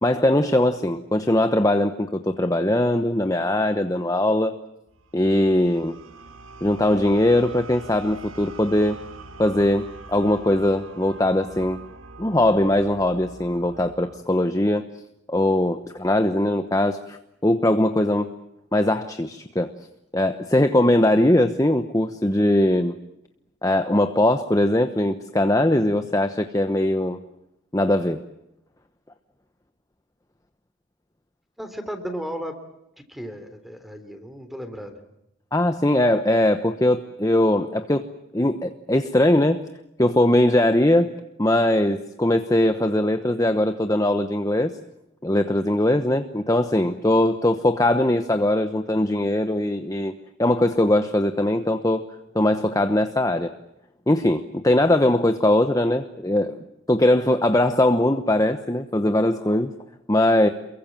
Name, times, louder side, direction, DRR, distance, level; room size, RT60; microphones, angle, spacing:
voice 1, 0.0-4.6 5.1-6.0 6.6-9.0 9.4-11.8 12.2-14.9 15.3-18.3 18.7-19.7 20.1-23.0 23.6-27.2 27.7-28.2 35.5-38.0 38.3-39.7 40.0-41.1 41.4-44.8 45.2-50.1 50.4-52.1 52.3-53.5 54.1-56.6 56.9-59.7 60.1-60.5, left 1 dB, 15° left, 8 dB, 1.0 m, -20 dB
sound 1, 4.9-14.2, right 3 dB, 85° right, 2.6 m, -43 dB
voice 2, 31.6-32.6 33.1-35.0, equal, ahead, 9 dB, 3.4 m, -34 dB
29.0 x 23.0 x 7.5 m, 0.85 s
head